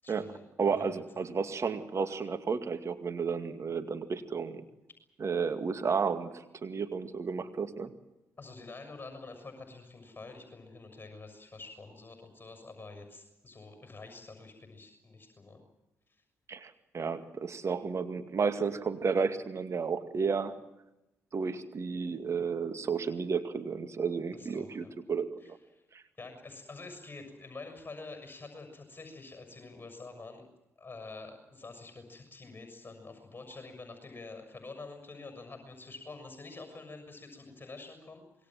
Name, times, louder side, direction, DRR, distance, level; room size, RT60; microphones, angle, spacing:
voice 1, 0.0-0.4 0.7-0.8 1.1-1.2 8.4-15.7 16.1-16.2 24.3-24.9 25.4-25.8 26.2-30.4 30.8-38.5, left 3 dB, 30° left, 6 dB, 6.6 m, -47 dB
voice 2, 0.6-4.6 5.2-7.9 16.5-20.5 21.3-25.3 25.9-26.0, right 5 dB, 45° right, 9 dB, 2.2 m, -32 dB
26.0 x 22.0 x 7.6 m, 0.93 s
hypercardioid pair, 45°, 7 cm